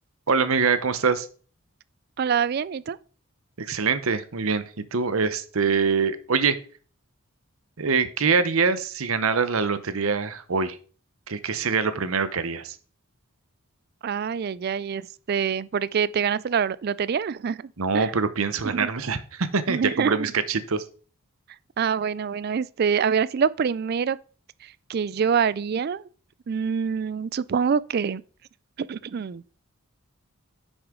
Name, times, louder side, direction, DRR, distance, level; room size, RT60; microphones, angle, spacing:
voice 1, 0.3-1.3 3.6-4.6 4.9-6.6 7.8-10.8 11.3-12.8 17.8-20.8, right 5 dB, 70° right, 0.8 m, -24 dB
voice 2, 2.2-3.0 14.0-18.1 18.6-18.9 19.7-20.2 21.8-24.2 24.6-26.1 26.5-28.2 28.8-29.4, right 6 dB, 45° right, 0.3 m, -25 dB
9.8 x 6.3 x 3.7 m
head